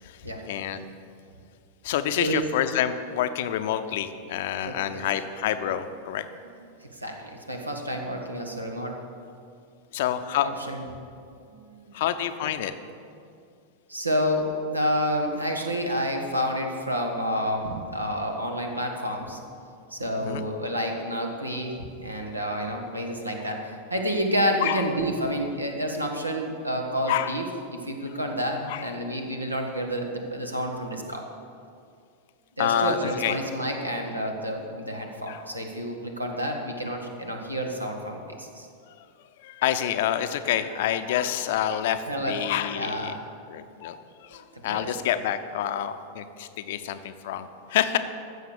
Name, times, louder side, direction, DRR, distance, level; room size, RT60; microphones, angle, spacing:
voice 1, 0.5-0.9 1.8-6.2 9.9-10.5 11.9-12.7 20.2-20.4 24.6-24.8 27.1-27.3 28.7-28.8 32.6-33.4 35.3-35.4 38.9-39.0 39.4-43.1 43.5-48.0, left 10 dB, 55° left, 10 dB, 0.7 m, -27 dB
voice 2, 4.6-5.2 6.8-9.0 10.7-10.9 11.4-12.0 13.9-19.4 19.9-27.4 27.7-31.2 32.6-38.7 42.1-42.4 42.8-43.2 44.3-44.9, equal, 85° right, 3 dB, 1.5 m, -29 dB
15.0 x 6.6 x 6.6 m, 2.4 s
figure-of-eight pair, 90°, 0 cm